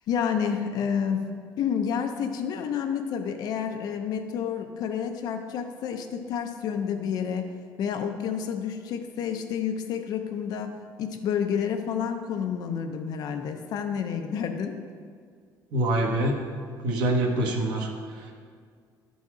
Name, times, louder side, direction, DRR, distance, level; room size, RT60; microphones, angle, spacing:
voice 1, 0.1-7.5 7.8-14.8, left 7 dB, 60° left, 6 dB, 0.6 m, -29 dB
voice 2, 15.7-16.4 16.7-17.9 18.2-18.3, right 1 dB, 70° right, 0 dB, 1.1 m, -25 dB
12.5 x 4.1 x 4.8 m, 2.1 s
cardioid pair, 170°, 8 cm